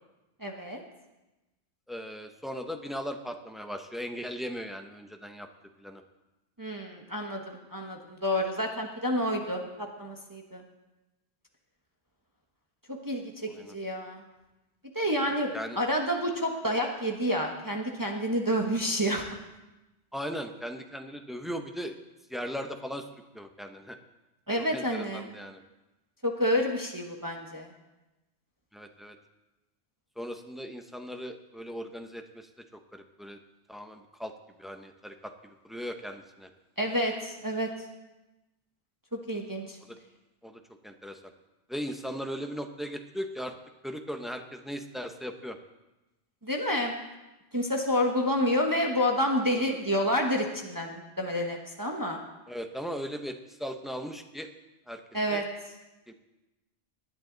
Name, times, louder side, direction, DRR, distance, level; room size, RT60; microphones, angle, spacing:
voice 1, 0.4-0.8 6.6-10.6 12.9-14.2 14.9-15.5 15.8-19.2 24.5-25.3 26.2-27.7 36.8-37.7 39.3-39.8 46.4-46.9 47.5-52.2 55.1-55.4, equal, 15° right, 1 dB, 1.2 m, -29 dB
voice 2, 1.9-5.5 5.8-6.0 13.5-13.7 15.2-15.8 20.1-22.0 22.3-24.0 24.6-25.6 28.7-29.2 30.2-33.4 33.7-34.3 34.6-36.5 39.9-40.0 40.4-41.3 41.7-43.5 43.8-45.6 52.5-54.5 54.9-55.0 55.3-55.4 56.1-56.2, equal, ahead, 5 dB, 0.7 m, -38 dB
19.0 x 10.5 x 4.0 m, 1.0 s
omnidirectional pair, 1.2 m